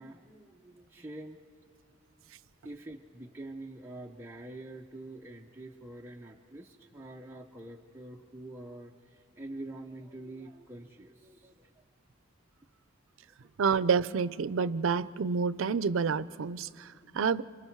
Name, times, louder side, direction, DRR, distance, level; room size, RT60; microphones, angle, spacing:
voice 1, 0.0-1.4 2.6-11.8, right 1 dB, 10° right, 0.6 m, -46 dB
voice 2, 13.6-17.4, right 5 dB, 75° right, 0.5 m, -28 dB
28.5 x 26.5 x 4.6 m
head